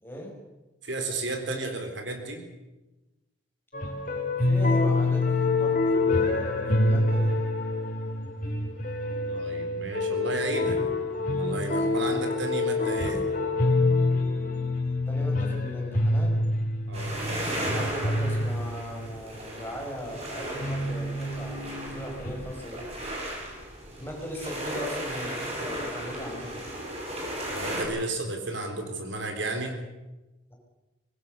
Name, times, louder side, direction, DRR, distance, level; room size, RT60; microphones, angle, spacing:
voice 1, 0.0-0.3 4.4-7.4 15.1-16.4 17.7-22.9 24.0-26.6, equal, 10° left, -1 dB, 6.1 m, -38 dB
voice 2, 0.8-2.4 9.3-10.8 11.4-13.2 16.9-17.2 27.5-29.8, right 2 dB, 65° right, 5 dB, 3.9 m, -33 dB
sound 1, 3.7-19.2 20.6-22.5, left 2 dB, 45° left, 3.9 m, -26 dB
sound 2, 16.9-27.8, right 1 dB, 30° right, 7.2 m, -35 dB
24.5 x 21.0 x 6.9 m, 1.1 s
head